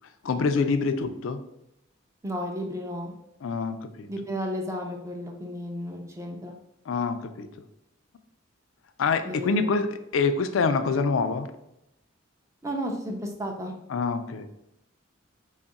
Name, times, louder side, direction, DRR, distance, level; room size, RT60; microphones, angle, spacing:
voice 1, 0.2-1.4 3.4-4.1 6.9-7.5 9.0-11.5 13.9-14.5, left 4 dB, 80° left, 9 dB, 0.4 m, -26 dB
voice 2, 2.2-3.1 4.1-6.5 9.3-9.6 12.6-13.7, equal, 15° right, 2 dB, 0.4 m, -33 dB
3.5 x 2.4 x 4.0 m, 0.84 s
head